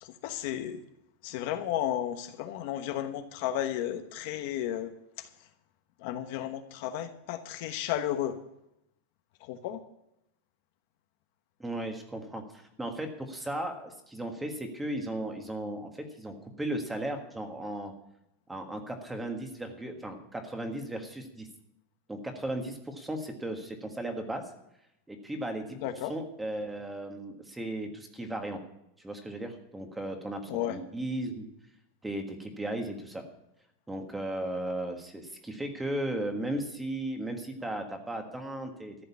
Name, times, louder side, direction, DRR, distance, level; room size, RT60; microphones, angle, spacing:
voice 1, 0.0-0.8 1.2-4.9 5.2-5.3 6.0-8.4 9.4-9.8 25.8-26.1 30.5-30.8, left 11 dB, 50° left, 8 dB, 1.1 m, -33 dB
voice 2, 11.6-17.9 18.5-21.5 22.1-24.5 25.1-25.8 26.1-28.6 29.0-30.4 30.7-31.5 32.0-33.3 33.9-39.0, right 1 dB, 5° right, 5 dB, 1.6 m, -36 dB
14.0 x 6.6 x 9.7 m, 0.81 s
supercardioid pair, 165°, 0 cm